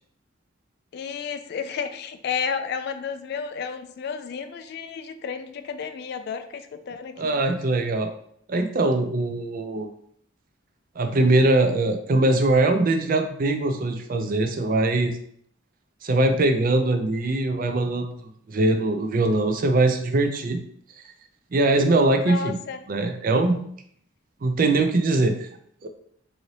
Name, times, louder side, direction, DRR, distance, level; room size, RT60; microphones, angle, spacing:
voice 1, 0.9-7.4 22.2-22.8, left 6 dB, 55° left, 9 dB, 0.3 m, -32 dB
voice 2, 7.2-8.1 8.5-9.9 11.0-15.2 16.0-18.1 18.5-20.6 21.5-22.6 22.9-23.6 24.4-25.5 25.8-25.9, right 2 dB, 45° right, 6 dB, 0.4 m, -22 dB
3.9 x 2.7 x 3.2 m, 0.66 s
head